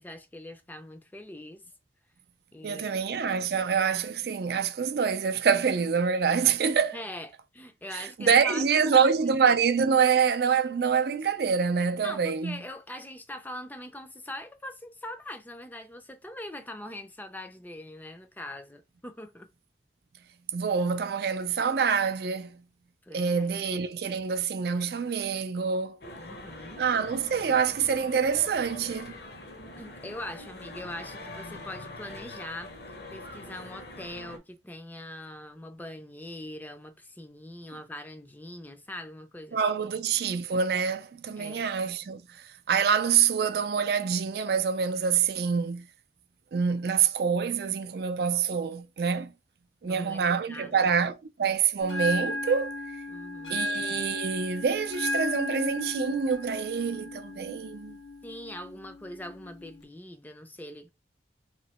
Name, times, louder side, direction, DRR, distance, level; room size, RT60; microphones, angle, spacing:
voice 1, 0.0-1.6 2.5-3.0 6.9-7.3 7.5-9.5 12.0-19.5 23.0-23.6 26.2-26.8 29.8-32.7 33.1-39.6 41.3-41.7 43.1-43.2 49.8-50.9 53.1-53.7 58.2-60.9, left 1 dB, 10° left, 0.4 m, -42 dB
voice 2, 2.6-7.0 7.9-12.6 20.5-22.6 23.1-26.0 26.8-29.1 39.5-45.9 46.5-49.3 49.8-52.7 53.5-58.0, right 6 dB, 60° right, 0.4 m, -26 dB
sound 1, 26.0-34.4, left 2 dB, 60° left, 0.7 m, -43 dB
Bell, 51.8-59.8, left 1 dB, 90° left, 1.4 m, -35 dB
3.0 x 2.7 x 4.1 m
head